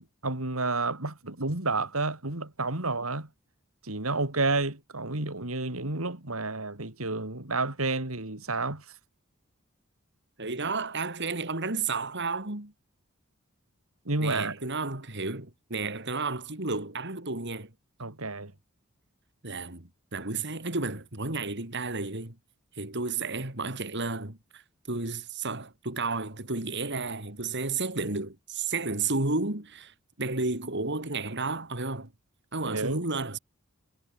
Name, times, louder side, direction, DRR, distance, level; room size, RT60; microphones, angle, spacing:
voice 1, 0.0-3.3 3.8-9.0 14.1-14.6 18.0-18.5 32.7-33.0, right 3 dB, 85° right, 3.8 m, -30 dB
voice 2, 10.4-12.7 14.2-17.7 19.4-22.4 22.8-32.1 32.5-33.4, right 3 dB, 55° right, 4.4 m, -32 dB
head